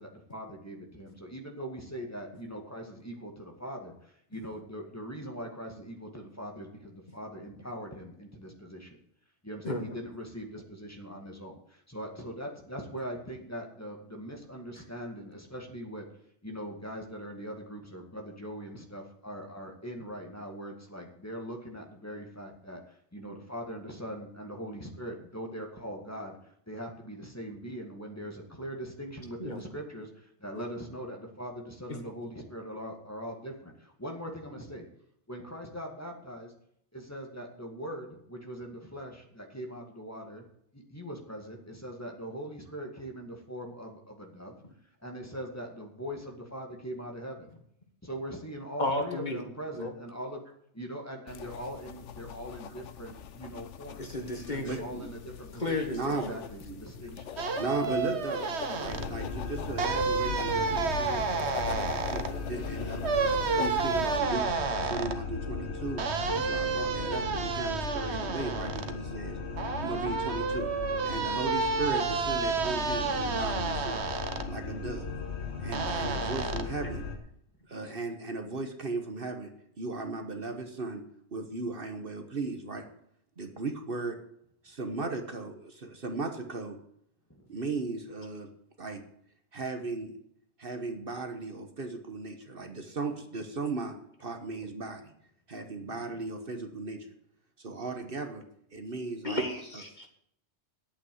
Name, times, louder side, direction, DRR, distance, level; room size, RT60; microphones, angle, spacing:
voice 1, 0.0-9.0 9.4-16.1 16.4-34.9 35.3-36.5 36.9-40.5 40.7-44.5 45.0-47.5 48.0-50.4 50.7-54.0 54.5-57.3 57.8-57.9 58.7-59.0 60.6-61.4 70.9-71.0 87.3-87.4 95.8-96.1, equal, 15° left, 2 dB, 2.1 m, -41 dB
voice 2, 48.8-49.4 49.7-49.9 54.0-54.9 55.5-56.2 99.2-100.1, left 1 dB, 40° left, 4 dB, 1.8 m, -33 dB
sound 1, 51.3-64.2, left 8 dB, 85° left, 1.1 m, -43 dB
voice 3, 54.6-55.1 55.9-57.1 57.6-58.5 58.8-61.2 61.6-64.5 64.8-66.0 66.3-69.4 69.8-70.7 71.0-74.1 74.5-75.1 75.6-77.0 77.7-79.5 79.8-81.0 81.3-82.9 83.4-84.2 84.6-86.8 87.5-88.5 88.8-89.0 89.5-90.2 90.6-93.9 94.2-95.1 95.5-97.1 97.6-98.4 98.7-99.4, right 3 dB, 50° right, 6 dB, 1.4 m, -36 dB
sound 2, 57.4-59.1 59.8-62.3 63.0-65.2 66.0-68.9 69.6-74.5 75.7-76.6, right 4 dB, 70° right, 1.3 m, -30 dB
sound 3, 58.8-77.2, left 4 dB, 70° left, 1.9 m, -37 dB
10.5 x 8.6 x 7.9 m, 0.71 s
omnidirectional pair, 1.2 m